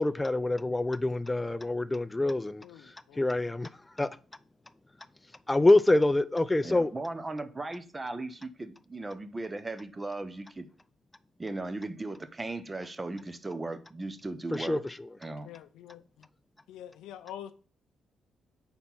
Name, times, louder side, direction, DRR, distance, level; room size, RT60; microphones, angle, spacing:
voice 1, 0.0-2.6 3.2-3.7 4.0-4.1 5.5-6.9 14.5-15.1, left 2 dB, 15° left, 0.4 m, -25 dB
voice 2, 2.6-3.3 15.4-16.3 16.7-17.5, left 11 dB, 90° left, 0.4 m, -46 dB
voice 3, 6.6-10.7 11.4-14.8 15.2-15.5, right 2 dB, 20° right, 0.7 m, -37 dB
4.4 x 4.3 x 5.5 m
cardioid pair, 90°, 0 cm